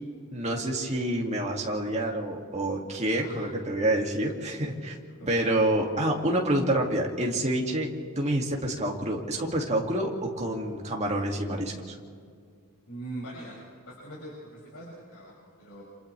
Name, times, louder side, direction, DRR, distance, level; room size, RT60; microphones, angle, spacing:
voice 1, 0.3-5.0 5.3-12.0, right 1 dB, 30° right, -1 dB, 2.5 m, -28 dB
voice 2, 12.9-13.6 13.9-15.8, right 1 dB, 85° left, -7 dB, 7.0 m, -42 dB
29.5 x 27.5 x 3.5 m, 2.1 s
head